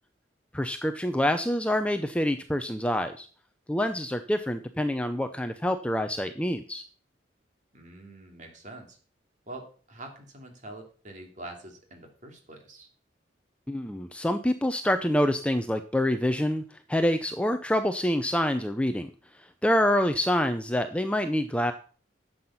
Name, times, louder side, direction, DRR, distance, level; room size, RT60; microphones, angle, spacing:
voice 1, 0.5-3.3 3.7-6.8 13.7-19.1 19.4-21.7, left 1 dB, 5° left, 8 dB, 0.6 m, -26 dB
voice 2, 7.7-9.0 9.5-12.9, right 2 dB, 40° right, 3 dB, 2.9 m, -45 dB
12.0 x 7.8 x 5.7 m, 0.41 s
head